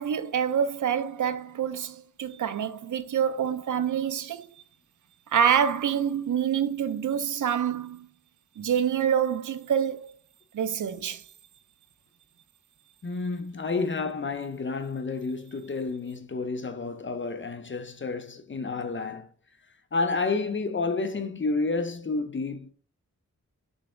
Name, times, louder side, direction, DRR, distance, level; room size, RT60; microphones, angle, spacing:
voice 1, 0.0-4.5 5.3-8.1 8.6-10.1 10.5-11.2, right 8 dB, 70° right, 0.5 m, -26 dB
voice 2, 13.0-19.3 19.9-22.7, left 3 dB, 40° left, 0.6 m, -30 dB
3.9 x 3.4 x 3.7 m
wide cardioid pair, 65°, 31 cm